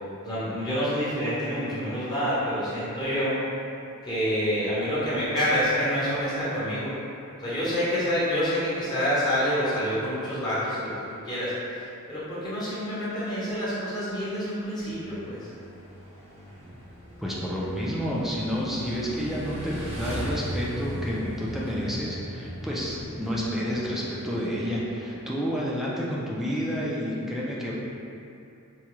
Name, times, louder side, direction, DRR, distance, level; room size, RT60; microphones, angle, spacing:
voice 1, 0.2-3.4 4.0-6.9 7.4-10.9 11.2-15.5, equal, 20° left, -10 dB, 0.8 m, -27 dB
Motorcycle / Engine, 14.8-24.6, equal, 30° right, 0.7 m, -38 dB
voice 2, 17.2-27.7, equal, ahead, -6 dB, 0.4 m, -30 dB
4.7 x 2.3 x 2.9 m, 2.7 s
head